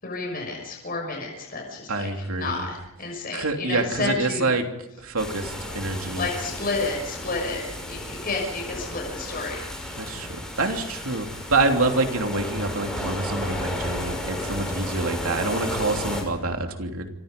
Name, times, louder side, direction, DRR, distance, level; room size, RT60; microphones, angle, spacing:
voice 1, 0.0-4.5 6.2-7.6 7.9-9.7, left 3 dB, 45° left, 0 dB, 6.1 m, -31 dB
voice 2, 1.9-2.6 3.3-4.7 5.0-6.3 10.0-17.1, right 3 dB, 85° right, 4 dB, 3.0 m, -26 dB
sound 1, 5.2-16.2, left 1 dB, 5° left, 5.7 m, -33 dB
27.0 x 25.0 x 5.3 m, 0.88 s
head